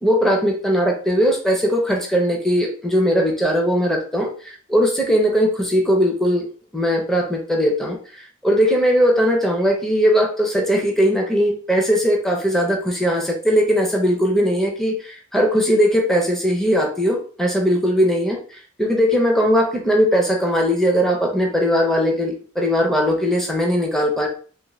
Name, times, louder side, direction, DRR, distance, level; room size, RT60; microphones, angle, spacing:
voice 1, 0.0-6.5 6.7-24.3, equal, ahead, 0 dB, 0.6 m, -19 dB
2.9 x 2.5 x 3.1 m, 0.42 s
head